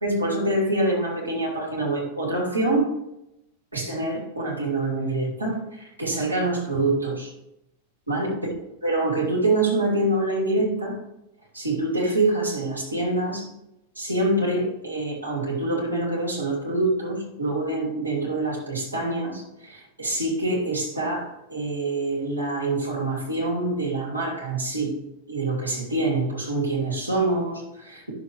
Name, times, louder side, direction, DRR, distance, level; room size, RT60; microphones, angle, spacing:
voice 1, 0.0-2.9 3.7-7.3 8.1-8.5 8.8-11.0 11.5-13.5 14.0-24.9 25.3-28.1, right 2 dB, 85° right, -3 dB, 2.9 m, -25 dB
11.0 x 6.9 x 3.1 m, 0.86 s
figure-of-eight pair, 90°, 0 cm